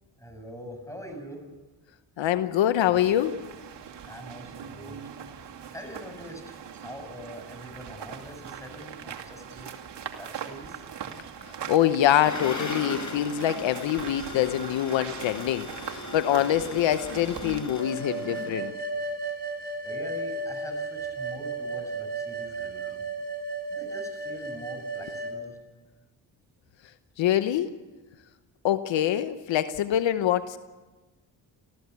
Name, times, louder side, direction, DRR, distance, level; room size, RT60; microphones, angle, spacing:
voice 1, 0.2-1.4 4.0-5.0 5.7-9.7 10.2-10.8 19.8-23.0 23.7-25.6, equal, 5° left, 5 dB, 7.6 m, -43 dB
voice 2, 2.2-3.4 11.7-18.7 27.2-27.7 28.6-30.6, left 11 dB, 75° left, 12 dB, 1.0 m, -25 dB
sound 1, 2.9-17.6, right 8 dB, 65° right, 2.5 m, -41 dB
sound 2, 12.2-18.7, left 2 dB, 40° left, 5.7 m, -38 dB
sound 3, 17.8-25.4, right 3 dB, 20° right, 4.2 m, -34 dB
28.5 x 15.0 x 8.4 m, 1.2 s
cardioid pair, 65°, 45 cm